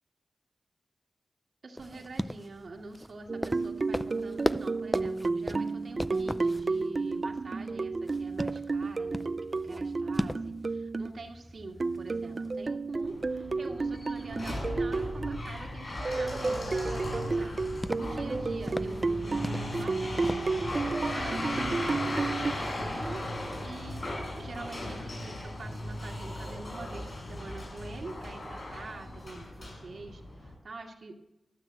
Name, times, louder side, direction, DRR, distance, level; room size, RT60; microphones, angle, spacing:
voice 1, 1.6-9.3 9.5-21.4 21.8-23.2 23.6-31.1, right 3 dB, 65° right, 0 dB, 2.2 m, -45 dB
sound 1, 1.8-20.5, equal, 5° left, 0.5 m, -40 dB
sound 2, 3.3-11.1 11.8-15.5 16.0-22.5, right 3 dB, 45° right, 0.6 m, -32 dB
sound 3, 13.0-30.5, left 1 dB, 50° left, 7.2 m, -37 dB
13.5 x 12.0 x 7.7 m, 0.91 s
wide cardioid pair, 80°, 0 cm